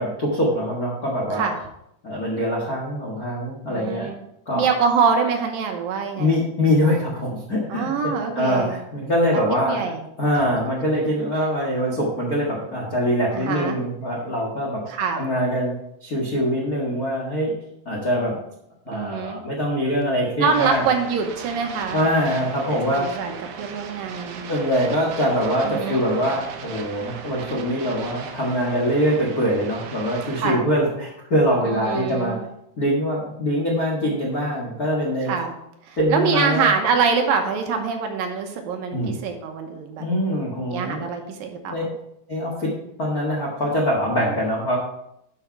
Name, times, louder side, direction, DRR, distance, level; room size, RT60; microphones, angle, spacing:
voice 1, 0.0-1.5 2.0-4.1 4.5-4.7 6.2-9.8 10.2-14.8 15.2-15.8 16.0-17.5 17.8-18.4 18.9-20.8 21.9-23.1 24.5-32.4 32.8-35.3 36.0-36.7 38.9-39.2 40.0-41.1 41.7-41.9 42.3-42.7 43.0-44.8, equal, 50° left, -2 dB, 1.0 m, -23 dB
voice 2, 3.7-4.2 4.6-6.5 7.7-8.8 9.7-10.0 13.3-13.8 14.9-15.3 18.9-19.4 20.4-22.0 22.7-24.5 25.7-26.1 30.4-30.6 31.6-32.5 35.3-35.6 35.8-40.1 40.7-41.9, right 5 dB, 70° right, 4 dB, 2.5 m, -24 dB
sound 1, 20.4-30.4, right 6 dB, 90° right, 3.1 m, -37 dB
11.0 x 5.7 x 4.6 m, 0.79 s
omnidirectional pair, 4.5 m